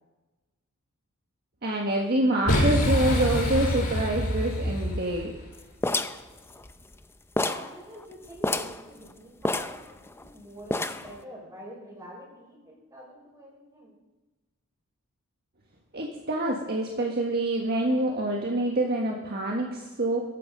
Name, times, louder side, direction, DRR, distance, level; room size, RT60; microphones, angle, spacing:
voice 1, 1.6-5.3 15.9-20.2, right 1 dB, 45° right, 0 dB, 1.7 m, -26 dB
Boom, 2.5-5.4, left 1 dB, 85° left, 6.3 m, -26 dB
sound 1, 5.8-7.0 7.4-7.7 8.0-8.1 8.4-8.8 9.5-10.3 10.7-11.2, left 2 dB, 10° left, 0.6 m, -29 dB
voice 2, 7.3-13.9, equal, 15° right, -2 dB, 6.0 m, -46 dB
18.0 x 14.5 x 5.3 m, 1.2 s
head